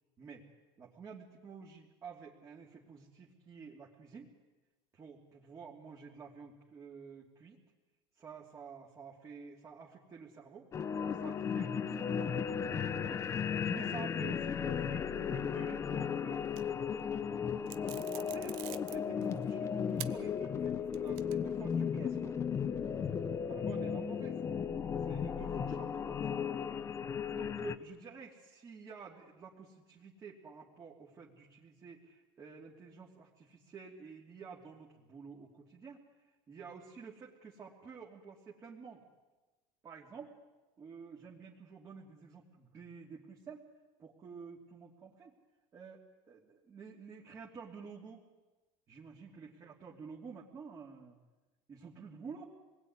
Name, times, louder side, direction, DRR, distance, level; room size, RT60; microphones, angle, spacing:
voice 1, 0.2-0.5 0.8-4.3 4.9-7.6 8.1-10.7 11.1-16.5 17.0-22.3 23.5-24.4 25.0-26.4 26.9-39.0 39.8-40.4 40.8-43.7 44.0-45.3 45.7-48.2 48.9-51.2 51.7-52.5, right 5 dB, 25° right, -3 dB, 3.0 m, -50 dB
sound 1, 10.7-27.8, left 7 dB, 25° left, 1.0 m, -35 dB
sound 2, 16.4-17.0 17.7-19.5 20.0-20.1 20.6-21.6, right 16 dB, 75° right, 1.3 m, -46 dB
27.5 x 20.5 x 9.8 m, 1.2 s
cardioid pair, 150°, 12 cm